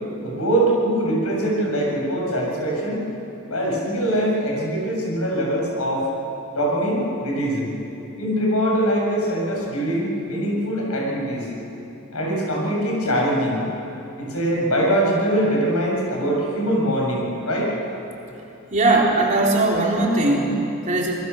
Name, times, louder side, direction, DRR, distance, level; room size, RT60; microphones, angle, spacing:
voice 1, 0.2-3.0 3.5-6.1 6.5-7.7 8.2-11.5 12.1-13.6 14.2-17.7, right 1 dB, 90° left, -2 dB, 7.1 m, -22 dB
voice 2, 18.7-21.1, right 2 dB, 35° right, -2 dB, 3.6 m, -19 dB
26.0 x 21.0 x 7.0 m, 2.8 s
head